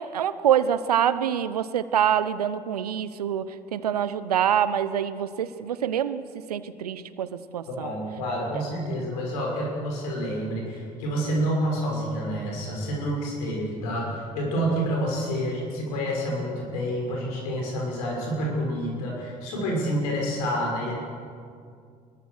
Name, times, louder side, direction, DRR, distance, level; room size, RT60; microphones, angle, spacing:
voice 1, 0.0-6.2 6.5-7.9 8.5-8.6, right 9 dB, 90° right, 14 dB, 0.8 m, -25 dB
voice 2, 7.8-21.0, equal, 80° left, -1 dB, 6.3 m, -28 dB
24.0 x 21.5 x 6.5 m, 2.3 s
hypercardioid pair, 50°, 19 cm